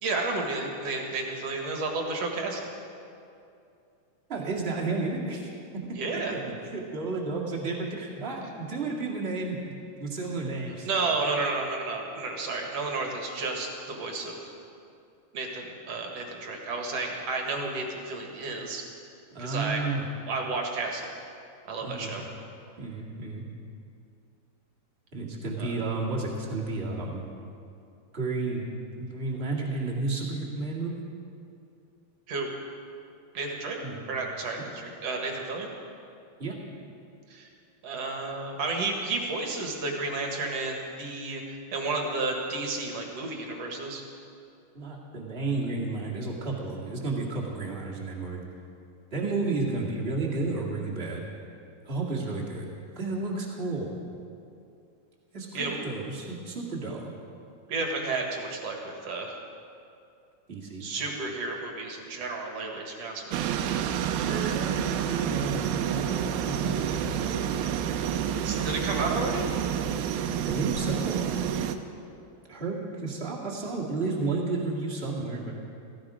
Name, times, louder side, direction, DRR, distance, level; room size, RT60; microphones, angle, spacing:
voice 1, 0.0-2.7 5.9-6.3 10.8-14.5 15.3-18.8 19.4-19.8 20.3-21.1 21.6-22.2 25.6-25.7 32.3-32.5 33.3-33.8 34.1-35.7 37.3-37.5 37.8-41.4 41.7-44.0 55.5-55.9 57.7-59.3 60.8-63.4 68.4-69.5, right 3 dB, 50° right, 1 dB, 2.3 m, -32 dB
voice 2, 4.3-6.0 6.3-10.9 19.3-20.0 21.8-22.3 22.8-23.5 25.1-27.2 28.1-28.6 29.0-31.0 33.8-34.0 36.4-36.6 44.7-48.4 49.1-51.2 51.8-52.7 52.9-53.9 55.3-57.1 60.5-60.8 64.1-67.4 70.4-71.2 72.5-75.5, right 3 dB, 25° right, -4 dB, 1.5 m, -32 dB
sound 1, 63.3-71.8, right 9 dB, 85° right, 2.6 m, -29 dB
16.5 x 16.0 x 5.0 m, 2.6 s
omnidirectional pair, 4.4 m